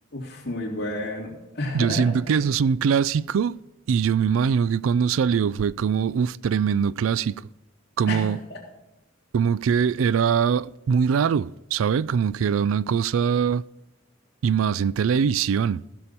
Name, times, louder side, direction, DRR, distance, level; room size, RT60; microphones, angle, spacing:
voice 1, 0.1-2.0 2.3-2.4 8.1-8.6, left 1 dB, 50° left, 3.3 m, -31 dB
voice 2, 1.7-3.6 3.9-7.3 8.0-8.4 9.3-13.6 14.4-15.8, right 7 dB, 90° right, 0.4 m, -22 dB
15.5 x 7.0 x 4.4 m
head